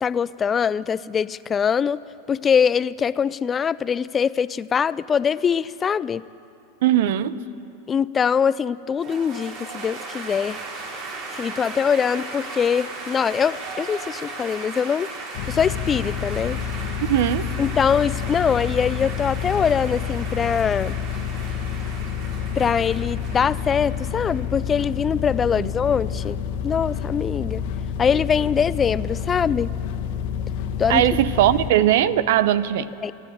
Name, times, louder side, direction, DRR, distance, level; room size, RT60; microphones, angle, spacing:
voice 1, 0.0-2.0 2.3-6.2 7.9-10.6 11.3-15.1 15.5-16.6 17.6-21.0 22.6-26.4 26.6-27.6 28.0-29.7 30.8-31.0 33.0-33.1, left 7 dB, 25° left, 18 dB, 0.4 m, -23 dB
voice 2, 6.8-7.4 17.1-17.5 25.6-25.7 30.9-32.9, right 12 dB, 65° right, 16 dB, 0.7 m, -19 dB
sound 1, 9.0-24.5, right 3 dB, 50° right, 3.7 m, -36 dB
sound 2, 15.3-31.7, left 8 dB, 60° left, 1.4 m, -29 dB
28.5 x 10.0 x 9.2 m, 2.8 s
hypercardioid pair, 105°, 0 cm